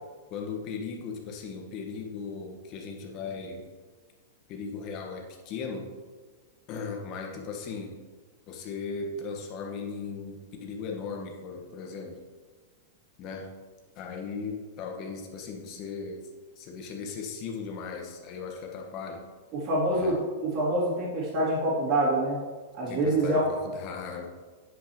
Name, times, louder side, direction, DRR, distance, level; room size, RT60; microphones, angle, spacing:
voice 1, 0.3-3.6 4.5-5.9 6.7-8.0 8.5-12.2 13.2-13.5 14.0-16.2 16.6-19.2 19.9-20.1 22.9-24.3, left 5 dB, 45° left, 1 dB, 1.4 m, -37 dB
voice 2, 19.5-20.1 20.4-22.4 22.7-23.4, right 1 dB, 45° right, -8 dB, 2.4 m, -26 dB
9.6 x 5.8 x 3.1 m, 1.4 s
hypercardioid pair, 110°, 0 cm